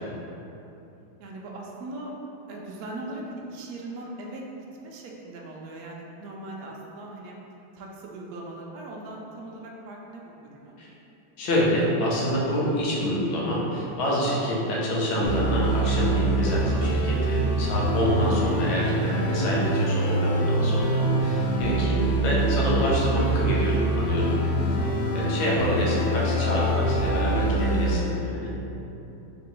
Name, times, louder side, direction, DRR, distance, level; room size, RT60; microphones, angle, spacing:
voice 1, 1.2-2.1 2.5-4.4 4.8-7.4 7.7-10.8, right 2 dB, 85° right, -2 dB, 0.8 m, -39 dB
voice 2, 11.4-24.4 25.1-28.5, equal, 90° left, -5 dB, 1.6 m, -26 dB
sound 1, 15.2-27.9, right 1 dB, 70° left, 0.9 m, -25 dB
3.6 x 2.9 x 3.8 m, 2.9 s
omnidirectional pair, 2.2 m